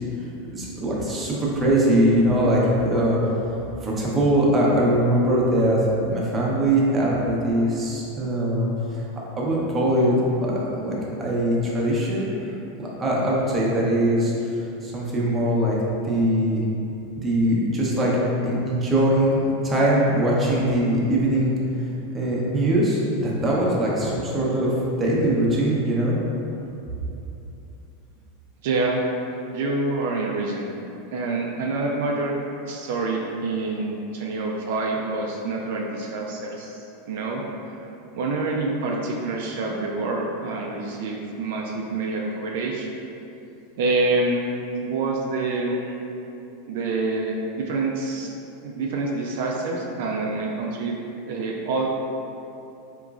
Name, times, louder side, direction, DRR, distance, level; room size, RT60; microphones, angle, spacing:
voice 1, 0.5-3.2 3.8-5.8 6.1-9.0 9.4-14.6 14.8-15.8 16.0-16.6 17.2-18.1 18.4-21.6 22.1-24.7 25.0-26.1, right 1 dB, 20° right, -5 dB, 0.7 m, -22 dB
voice 2, 28.6-29.0 29.5-30.7 31.1-32.4 32.7-37.8 38.2-42.9 43.8-44.5 44.8-45.9 46.7-48.3 48.6-51.0 51.2-51.9, right 3 dB, 70° right, -1 dB, 0.3 m, -27 dB
3.6 x 3.0 x 2.4 m, 2.8 s
supercardioid pair, 130°, 0 cm